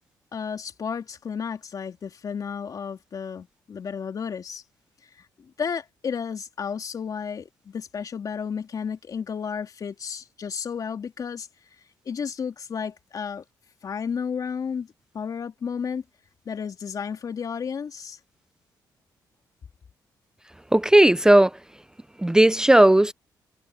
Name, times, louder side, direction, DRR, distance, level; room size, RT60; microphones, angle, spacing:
voice 1, 0.3-4.6 5.2-11.5 12.1-13.4 13.8-14.9 15.1-16.0 16.5-18.2, left 6 dB, 50° left, 3.5 m, -32 dB
voice 2, 20.7-21.5 22.2-23.1, right 1 dB, 10° right, 0.6 m, -15 dB
cardioid pair, 90°, 8 cm